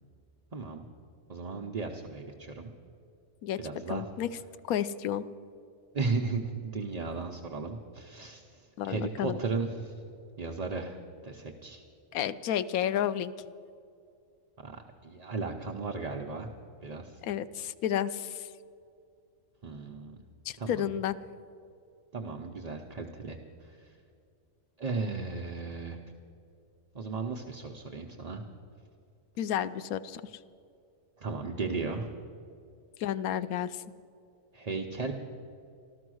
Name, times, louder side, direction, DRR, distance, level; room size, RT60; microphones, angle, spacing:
voice 1, 0.5-0.9 1.3-2.7 3.6-4.0 5.9-9.9 10.4-11.8 14.6-16.5 16.8-17.2 19.6-20.2 20.6-21.0 22.1-24.0 24.8-26.0 26.9-28.4 31.2-32.1 34.5-35.1, right 4 dB, 40° right, 1 dB, 0.6 m, -35 dB
voice 2, 3.9-4.3 4.7-5.2 8.8-9.4 12.1-13.3 17.2-18.5 20.5-21.2 29.4-30.2 33.0-33.8, left 10 dB, 85° left, 14 dB, 1.0 m, -31 dB
14.0 x 13.0 x 6.3 m, 2.5 s
omnidirectional pair, 1.5 m